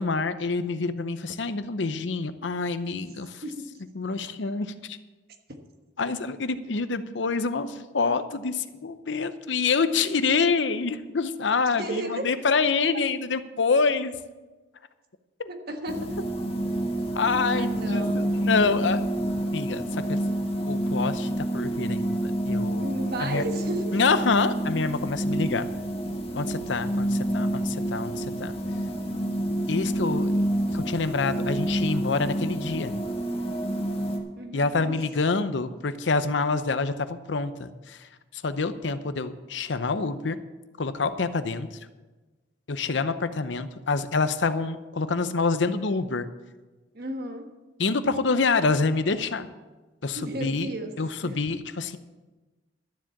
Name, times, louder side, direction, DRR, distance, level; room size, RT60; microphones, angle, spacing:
voice 1, 0.0-3.4 3.9-5.0 6.0-14.1 15.4-15.5 17.2-19.0 19.5-20.2 20.7-22.9 23.2-23.4 23.9-25.7 26.3-28.5 29.7-30.3 30.7-32.9 34.5-40.4 40.8-41.8 42.7-46.3 47.8-49.5 50.0-50.7 51.0-52.0, left 4 dB, 75° left, 12 dB, 0.7 m, -27 dB
voice 2, 11.8-12.2 15.5-16.2 17.3-18.3 22.6-24.0 34.4-35.0 46.9-47.4 50.1-50.9 51.2-51.4, right 1 dB, 55° right, 4 dB, 1.5 m, -34 dB
sound 1, 15.9-34.2, right 1 dB, 30° left, 1.6 m, -28 dB
12.5 x 7.5 x 7.2 m, 1.2 s
head